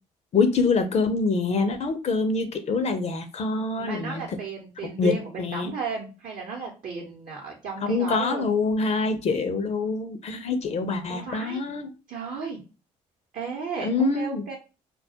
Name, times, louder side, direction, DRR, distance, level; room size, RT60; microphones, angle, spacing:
voice 1, 0.3-4.4 5.0-5.7 7.8-11.9 13.8-14.4, left 4 dB, 45° left, 0.4 m, -25 dB
voice 2, 3.8-8.5 11.1-11.6 12.1-12.6 13.3-14.6, right 5 dB, 55° right, 0.7 m, -34 dB
2.2 x 2.0 x 2.7 m
hypercardioid pair, 50°, 16 cm